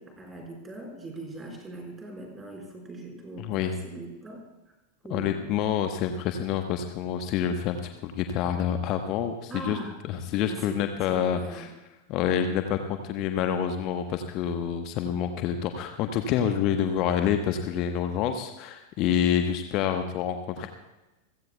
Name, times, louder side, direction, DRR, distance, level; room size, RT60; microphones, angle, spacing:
voice 1, 0.0-4.4 5.0-5.6 9.5-10.0 10.3-10.8 11.1-11.7, right 2 dB, 15° right, 0 dB, 5.2 m, -41 dB
voice 2, 3.4-3.7 5.1-9.8 10.1-11.7 12.1-20.7, left 9 dB, 40° left, 6 dB, 1.1 m, -27 dB
28.5 x 16.0 x 2.3 m, 1.0 s
figure-of-eight pair, 90°, 0 cm